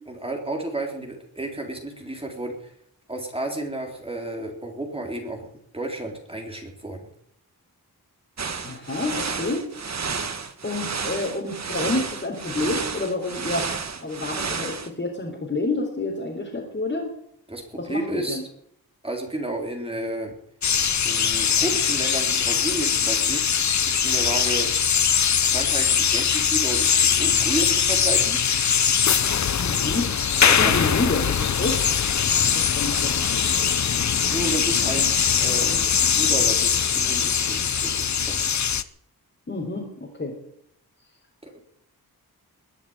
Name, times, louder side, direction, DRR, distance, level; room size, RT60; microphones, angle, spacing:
voice 1, 0.1-2.7 3.1-5.5 5.7-7.1 17.5-18.4 19.0-20.4 21.0-23.4 23.9-24.7 25.1-28.4 29.7-30.1 30.4-30.9 34.2-38.5 41.4-41.6, right 1 dB, 15° right, 2 dB, 3.5 m, -32 dB
sound 1, 8.4-14.9, right 5 dB, 45° right, 1.6 m, -31 dB
voice 2, 8.6-9.7 10.6-13.7 14.0-17.1 17.7-18.4 29.6-30.1 30.5-31.8 32.5-33.2 39.5-40.4, left 2 dB, 30° left, -3 dB, 3.9 m, -28 dB
sound 2, 20.6-38.8, left 7 dB, 50° left, 0.8 m, -21 dB
21.0 x 7.2 x 9.5 m, 0.72 s
wide cardioid pair, 120°, 38 cm